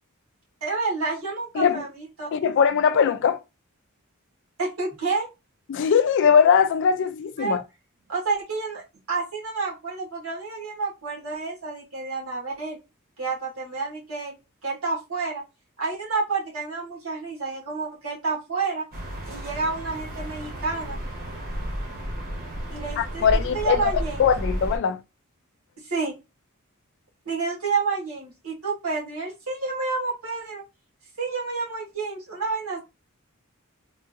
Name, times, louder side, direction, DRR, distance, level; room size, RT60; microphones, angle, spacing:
voice 1, 0.6-2.5 4.6-5.3 7.4-7.6 8.1-8.8 9.1-12.8 13.2-14.3 14.6-15.4 15.8-18.8 19.3-21.0 22.7-23.3 23.5-24.3 25.8-26.2 27.2-30.6 31.2-32.8, right 4 dB, 80° right, 1.6 m, -29 dB
voice 2, 2.3-3.4 5.7-7.6 23.0-25.0, left 7 dB, 55° left, 0.3 m, -21 dB
sound 1, 18.9-24.8, equal, 45° right, 1.0 m, -32 dB
3.5 x 2.5 x 2.6 m
head